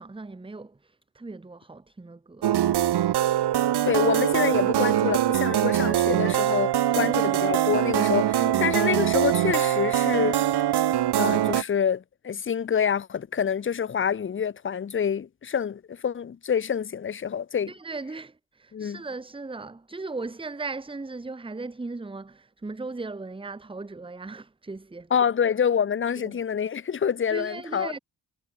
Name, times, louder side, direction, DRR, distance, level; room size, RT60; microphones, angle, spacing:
voice 1, 0.0-2.5 6.1-6.3 6.9-7.4 8.4-8.8 17.7-25.1 26.2-26.4 27.3-28.0, right 3 dB, 15° right, 0.7 m, -37 dB
sound 1, 2.4-11.6, right 12 dB, 80° right, 0.7 m, -23 dB
voice 2, 3.8-10.4 11.2-17.7 18.7-19.0 25.1-27.9, left 7 dB, 30° left, 0.5 m, -27 dB
wide cardioid pair, 90°, 39 cm